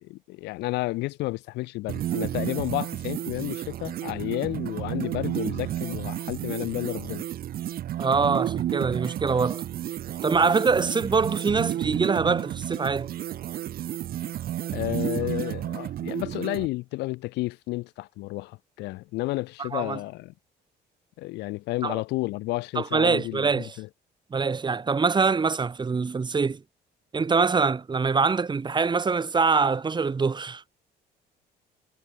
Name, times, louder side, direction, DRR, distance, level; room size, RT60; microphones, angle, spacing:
voice 1, 0.0-7.2 14.7-20.3 21.2-23.9, left 20 dB, 90° left, 3.3 m, -31 dB
sound 1, 1.9-16.7, right 12 dB, 60° right, 2.3 m, -32 dB
voice 2, 8.0-9.6 10.2-13.1 19.6-20.0 21.8-22.0 22.8-23.7 24.3-26.6 27.1-30.6, right 4 dB, 25° right, 3.7 m, -24 dB
cardioid pair, 110°, 17 cm